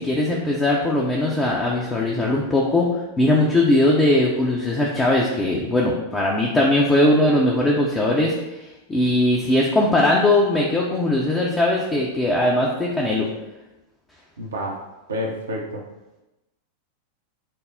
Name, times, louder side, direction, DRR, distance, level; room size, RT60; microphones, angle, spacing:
voice 1, 0.0-2.9 3.2-8.3 8.9-13.3, left 1 dB, 15° left, -3 dB, 0.6 m, -20 dB
voice 2, 14.4-14.8 15.1-15.8, equal, 70° right, -1 dB, 0.7 m, -29 dB
5.6 x 2.0 x 3.9 m, 1.0 s
figure-of-eight pair, 90°, 0 cm